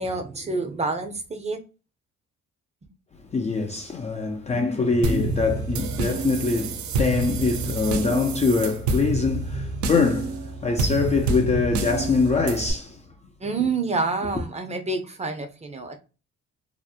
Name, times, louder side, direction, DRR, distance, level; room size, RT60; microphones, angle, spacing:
voice 1, 0.0-1.6 13.4-16.0, right 3 dB, 20° right, 0.6 m, -28 dB
voice 2, 3.3-13.0, left 4 dB, 25° left, 0.3 m, -24 dB
sound 1, 5.0-12.7, right 3 dB, 70° right, 0.5 m, -28 dB
2.7 x 2.0 x 2.3 m
cardioid pair, 90°, 30 cm